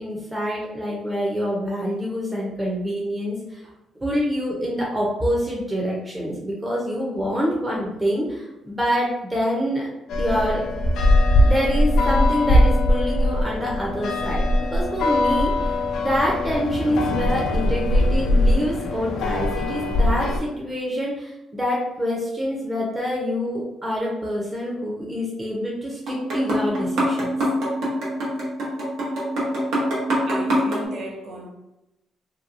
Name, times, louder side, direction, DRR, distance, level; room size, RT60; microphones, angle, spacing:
voice 1, 0.0-3.6 4.0-9.9 10.2-10.6 11.4-14.4 14.7-27.3, equal, 15° right, -4 dB, 0.6 m, -26 dB
voice 2, 8.3-8.8 25.8-26.2 30.3-31.5, right 1 dB, 60° right, 1 dB, 0.6 m, -38 dB
sound 1, 10.1-20.4, left 1 dB, 75° left, 0.3 m, -21 dB
sound 2, 26.1-30.9, equal, 85° right, 0.9 m, -24 dB
2.8 x 2.2 x 2.5 m, 0.93 s
cardioid pair, 90°, 0 cm